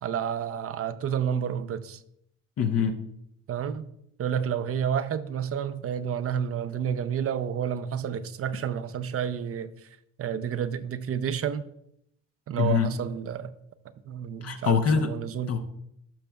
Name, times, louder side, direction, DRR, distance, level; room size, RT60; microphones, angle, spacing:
voice 1, 0.0-2.0 3.5-3.9 4.2-9.7 10.2-11.6 12.5-13.5 14.1-15.6, right 8 dB, 50° right, 0.5 m, -30 dB
voice 2, 2.6-3.0 12.6-12.9 14.4-15.1 15.5-15.6, left 6 dB, 55° left, 0.7 m, -24 dB
11.5 x 5.9 x 2.3 m
cardioid pair, 90°, 30 cm